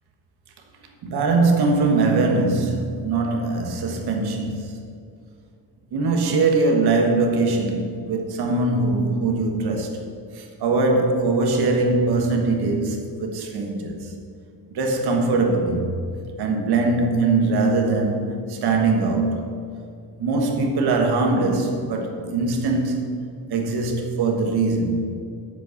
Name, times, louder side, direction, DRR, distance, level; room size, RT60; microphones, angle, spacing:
voice 1, 1.0-4.8 5.9-10.0 10.3-14.1 14.7-16.0 16.4-19.5 20.2-23.2 23.5-25.2, right 3 dB, 70° right, 1.6 m, -22 dB
9.9 x 7.7 x 6.5 m
cardioid pair, 180°, 40 cm